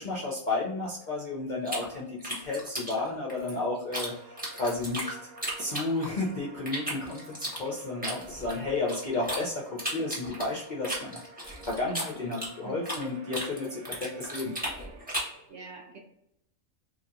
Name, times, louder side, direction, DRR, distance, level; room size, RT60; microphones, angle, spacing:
voice 1, 0.0-5.1 5.6-14.5, left 2 dB, 50° left, -5 dB, 0.5 m, -32 dB
sound 1, 1.7-4.1 4.4-6.3 6.7-9.4 9.8-13.1 13.3-15.4, equal, 5° right, 0.9 m, -35 dB
sound 2, 4.0-15.3, right 2 dB, 90° right, 1.1 m, -51 dB
voice 2, 12.6-13.1 15.1-16.0, right 4 dB, 55° right, -1 dB, 1.1 m, -46 dB
3.1 x 2.8 x 2.5 m, 0.80 s
omnidirectional pair, 1.5 m